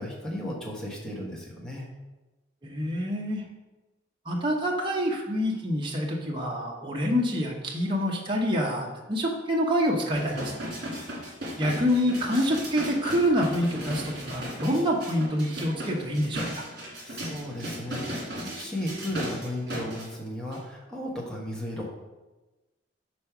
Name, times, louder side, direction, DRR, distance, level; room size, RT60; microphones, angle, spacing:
voice 1, 0.0-1.9 17.0-21.9, left 1 dB, 5° left, -5 dB, 1.2 m, -35 dB
voice 2, 2.6-3.4 4.3-10.7 11.6-16.6, equal, 25° right, -1 dB, 0.8 m, -27 dB
sound 1, 10.1-20.1 20.5-20.6, equal, 55° right, 2.2 m, -36 dB
5.2 x 4.4 x 5.9 m, 1.1 s
head